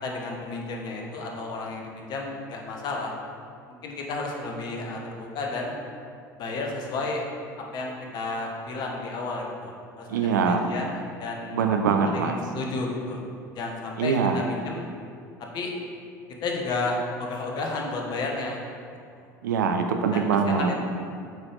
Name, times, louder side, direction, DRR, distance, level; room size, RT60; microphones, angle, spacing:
voice 1, 0.0-3.1 3.7-5.8 6.4-7.3 7.7-11.6 12.1-13.2 13.5-14.9 15.5-15.7 16.4-18.6 20.1-20.8, left 3 dB, 45° left, 0 dB, 1.2 m, -32 dB
voice 2, 10.1-10.7 11.5-12.3 14.0-14.4 19.4-20.7, right 5 dB, 75° right, 5 dB, 0.5 m, -23 dB
8.0 x 4.3 x 3.7 m, 2.3 s
figure-of-eight pair, 70°, 10 cm